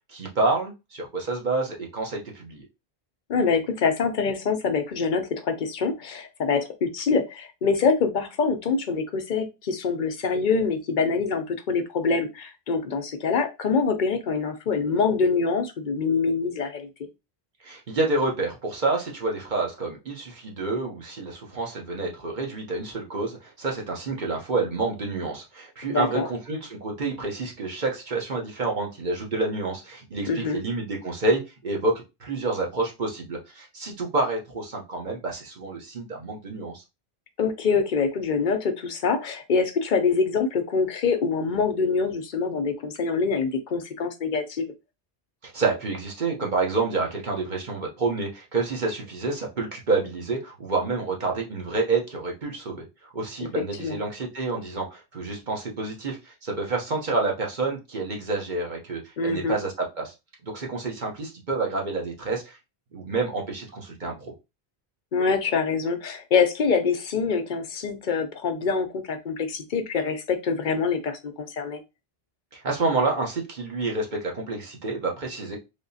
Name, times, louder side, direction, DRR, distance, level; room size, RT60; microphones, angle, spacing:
voice 1, 0.1-2.6 17.6-36.8 45.4-52.8 53.1-60.1 60.4-62.6 62.9-64.3 72.5-75.6, right 3 dB, 50° right, 0 dB, 1.0 m, -28 dB
voice 2, 3.3-16.9 25.9-26.3 30.3-30.6 37.4-44.7 53.8-54.0 59.2-59.6 65.1-71.8, left 5 dB, 55° left, 8 dB, 0.7 m, -25 dB
3.5 x 2.9 x 2.7 m, 0.25 s
omnidirectional pair, 1.1 m